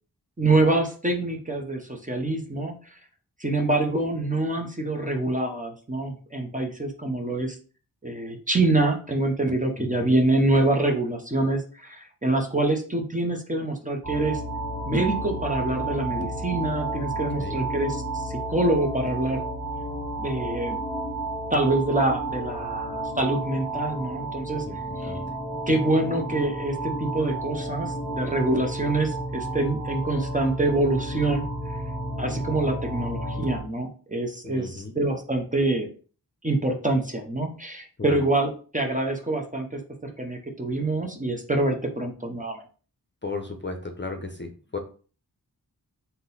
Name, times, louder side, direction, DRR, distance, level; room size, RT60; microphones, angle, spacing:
voice 1, 0.4-3.0 3.4-7.6 8.0-14.4 14.9-19.4 20.2-20.8 21.5-24.6 25.0-25.1 25.7-31.5 32.2-35.9 36.4-42.6, right 2 dB, 20° right, 3 dB, 0.8 m, -25 dB
voice 2, 9.8-10.2 17.1-17.6 24.7-25.2 34.4-34.9 38.0-38.2 43.2-44.8, left 3 dB, 30° left, 5 dB, 0.7 m, -35 dB
sound 1, 14.0-33.6, right 1 dB, 10° left, 1.1 m, -32 dB
3.7 x 2.7 x 4.0 m, 0.39 s
wide cardioid pair, 60°, 40 cm